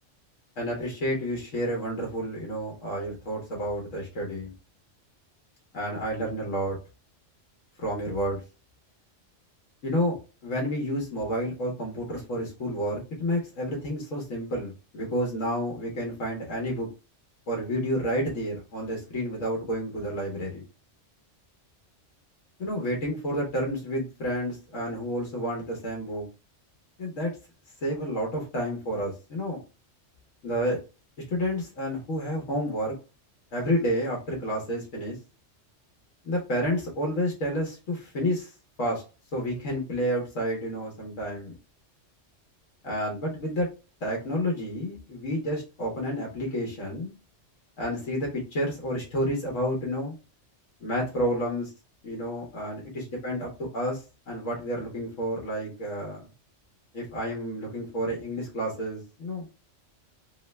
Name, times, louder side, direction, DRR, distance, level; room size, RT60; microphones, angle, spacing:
voice 1, 0.6-4.5 5.7-6.8 7.8-8.4 9.8-10.2 10.4-16.9 17.5-20.6 22.6-26.2 27.0-27.3 27.8-29.6 30.4-30.8 31.3-32.9 33.5-35.2 36.2-38.5 38.8-39.0 39.3-41.6 42.8-43.7 44.0-47.1 47.8-50.1 50.8-51.7 52.0-56.3 56.9-59.5, equal, 85° left, -1 dB, 1.3 m, -30 dB
3.2 x 2.1 x 3.1 m, 0.32 s
omnidirectional pair, 1.3 m